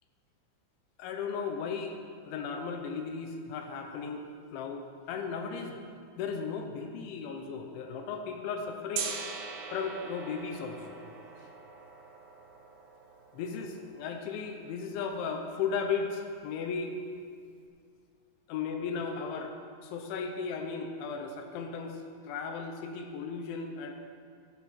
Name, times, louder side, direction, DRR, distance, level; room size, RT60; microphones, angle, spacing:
voice 1, 1.0-1.9 2.2-9.1 9.7-11.0 13.3-17.0 18.5-19.6 19.8-23.9, left 5 dB, 80° left, 4 dB, 3.2 m, -36 dB
Gong, 8.9-14.9, right 6 dB, 85° right, 3.6 m, -42 dB
13.0 x 12.0 x 4.3 m, 2.2 s
omnidirectional pair, 5.5 m